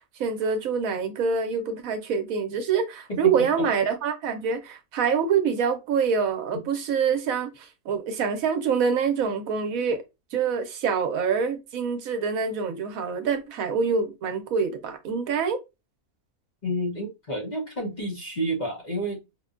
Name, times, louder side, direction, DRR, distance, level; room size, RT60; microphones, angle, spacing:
voice 1, 0.2-10.0 10.3-15.6, right 6 dB, 70° right, 1.0 m, -25 dB
voice 2, 3.1-3.7 6.5-6.6 16.6-19.2, equal, 35° left, 0.8 m, -30 dB
4.8 x 2.1 x 2.4 m
omnidirectional pair, 1.6 m